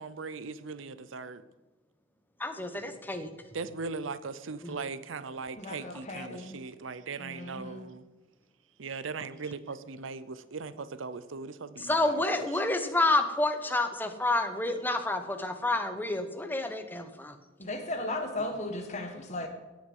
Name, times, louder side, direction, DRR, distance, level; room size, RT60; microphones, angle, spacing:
voice 1, 0.0-1.4 3.5-8.0 8.8-12.5, right 4 dB, 85° right, 14 dB, 0.7 m, -39 dB
voice 2, 2.4-3.3 4.6-4.8 11.8-17.3, left 2 dB, 10° left, 7 dB, 1.0 m, -29 dB
voice 3, 5.6-6.6 7.2-7.9 17.6-19.5, left 2 dB, 35° left, 5 dB, 1.7 m, -36 dB
17.0 x 6.3 x 5.5 m, 1.1 s
head